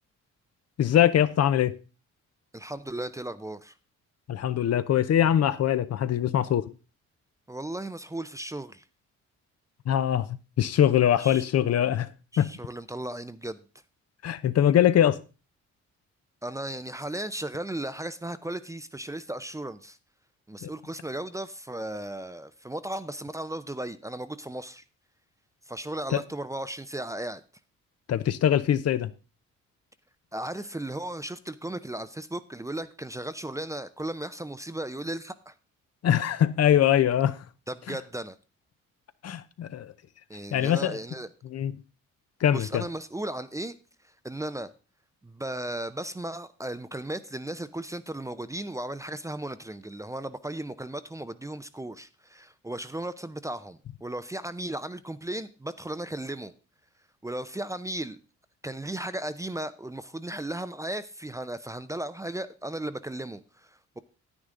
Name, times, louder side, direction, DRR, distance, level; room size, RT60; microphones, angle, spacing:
voice 1, 0.8-1.8 4.3-6.7 9.9-10.3 10.6-12.1 12.4-12.5 14.2-15.2 20.6-20.7 26.1-26.2 28.1-29.1 36.0-37.4 37.9-38.0 39.2-39.9 40.5-41.0 41.5-41.7 42.4-42.8, left 10 dB, 55° left, 0.7 m, -22 dB
voice 2, 2.5-3.7 7.5-8.8 11.2-11.4 12.3-13.6 16.4-20.0 20.5-24.8 25.7-27.4 30.3-35.5 37.7-38.4 40.3-41.3 42.5-43.8 44.0-44.7 45.2-56.5 57.2-58.2 58.6-64.0, right 1 dB, 10° right, 0.6 m, -36 dB
9.9 x 9.5 x 3.7 m
cardioid pair, 90°, 30 cm